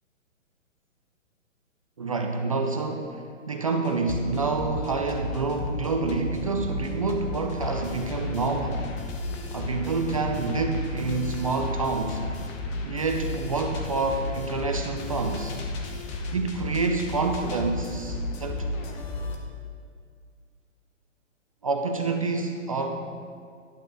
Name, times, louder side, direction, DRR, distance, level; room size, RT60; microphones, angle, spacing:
voice 1, 2.0-8.9 9.5-12.3 12.8-15.6 16.3-18.7 21.6-23.0, right 3 dB, 30° right, 4 dB, 0.4 m, -28 dB
sound 1, 3.9-19.4, left 2 dB, 25° left, 0.9 m, -33 dB
11.5 x 8.0 x 3.9 m, 2.1 s
hypercardioid pair, 145°, 39 cm